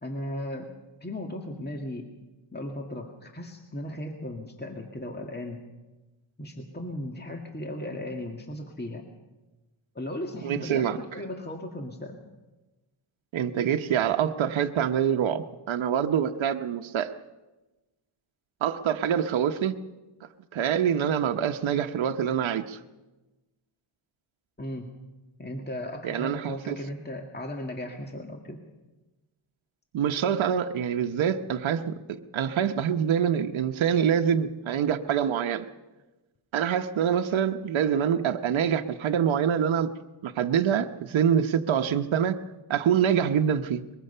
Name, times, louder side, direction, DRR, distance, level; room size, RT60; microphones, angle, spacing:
voice 1, 0.0-0.7 1.0-2.1 2.5-5.6 6.4-9.0 10.0-12.2 24.6-24.9 25.4-28.6, left 1 dB, 20° left, 3 dB, 2.0 m, -36 dB
voice 2, 10.4-11.0 13.3-17.1 18.6-19.8 20.5-22.8 26.0-26.8 29.9-35.7 36.5-39.9 40.2-42.4 42.7-43.8, right 8 dB, 70° right, 5 dB, 1.0 m, -25 dB
23.0 x 22.0 x 5.6 m, 1.1 s
cardioid pair, 90°, 48 cm